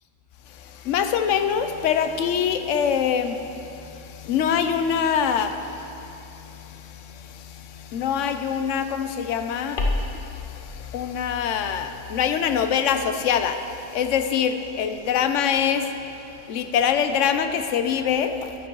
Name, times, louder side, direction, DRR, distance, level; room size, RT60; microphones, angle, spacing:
voice 1, 0.8-13.6 13.9-15.9 16.5-18.5, left 7 dB, 80° left, 8 dB, 1.0 m, -25 dB
sound 1, 9.8-14.6, left 2 dB, 45° left, 1.0 m, -34 dB
10.5 x 9.1 x 4.6 m, 2.8 s
omnidirectional pair, 1.3 m